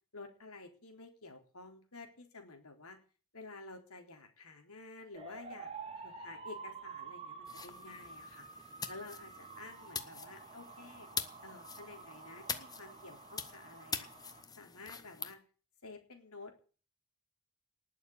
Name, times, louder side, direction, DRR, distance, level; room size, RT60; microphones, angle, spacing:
voice 1, 0.1-3.0 3.3-11.1 11.4-14.1 14.6-15.4 15.8-16.6, left 3 dB, 80° left, 4 dB, 3.8 m, -51 dB
sound 1, 5.1-14.4, right 4 dB, 25° right, 2.5 m, -49 dB
sound 2, 7.5-15.3, left 5 dB, 15° left, 1.1 m, -44 dB
19.5 x 7.2 x 8.6 m, 0.40 s
head